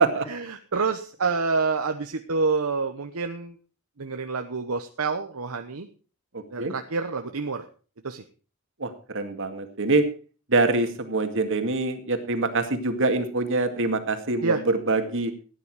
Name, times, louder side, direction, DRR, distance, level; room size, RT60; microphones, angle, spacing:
voice 1, 0.3-3.5 4.0-5.9 6.5-7.7 8.0-8.2 14.4-14.6, right 4 dB, 80° right, 6 dB, 1.0 m, -27 dB
voice 2, 6.3-6.7 8.8-10.0 10.5-14.6 14.9-15.3, right 3 dB, 60° right, 7 dB, 2.2 m, -24 dB
15.5 x 10.0 x 4.9 m, 0.37 s
head